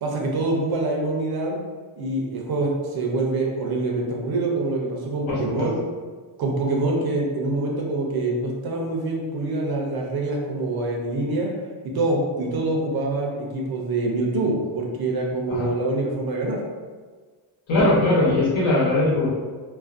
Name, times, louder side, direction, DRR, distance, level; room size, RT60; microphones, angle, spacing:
voice 1, 0.0-1.6 2.0-5.8 6.4-11.5 11.8-16.6, right 2 dB, 50° right, -1 dB, 0.5 m, -25 dB
voice 2, 5.3-5.7 15.5-15.7 17.7-19.3, left 2 dB, 70° left, -6 dB, 1.0 m, -20 dB
2.4 x 2.1 x 2.4 m, 1.4 s
cardioid pair, 145°, 50 cm